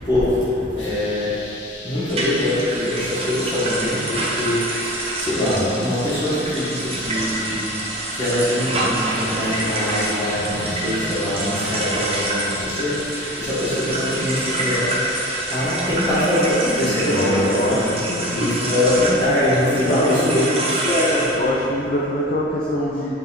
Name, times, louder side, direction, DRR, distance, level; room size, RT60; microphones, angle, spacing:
voice 1, 0.0-1.5 1.8-7.8 8.1-21.3, left 1 dB, 25° left, -13 dB, 1.5 m, -23 dB
sound 1, 0.8-15.6, left 3 dB, 80° left, 0.8 m, -38 dB
sound 2, 2.1-21.3, right 2 dB, 35° right, 0.9 m, -27 dB
sound 3, 9.2-12.3, right 1 dB, 65° right, 0.6 m, -36 dB
voice 2, 16.8-18.7 19.7-20.5 21.3-23.1, left 1 dB, 50° left, -6 dB, 0.7 m, -24 dB
8.6 x 3.6 x 3.8 m, 2.9 s
head